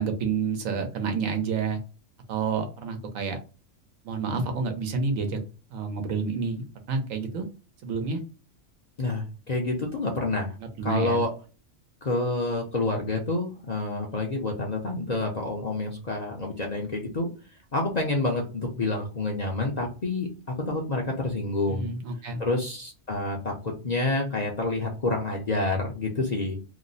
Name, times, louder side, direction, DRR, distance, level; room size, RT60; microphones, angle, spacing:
voice 1, 0.0-1.8 2.3-3.4 4.0-5.4 5.7-7.4 7.8-8.2 10.8-11.2 21.7-22.4, right 5 dB, 80° right, 5 dB, 1.1 m, -29 dB
voice 2, 9.0-10.6 10.8-11.3 12.0-17.3 17.7-21.9 22.4-26.6, left 2 dB, 45° left, 0 dB, 0.6 m, -28 dB
2.9 x 2.0 x 3.9 m, 0.34 s
omnidirectional pair, 1.4 m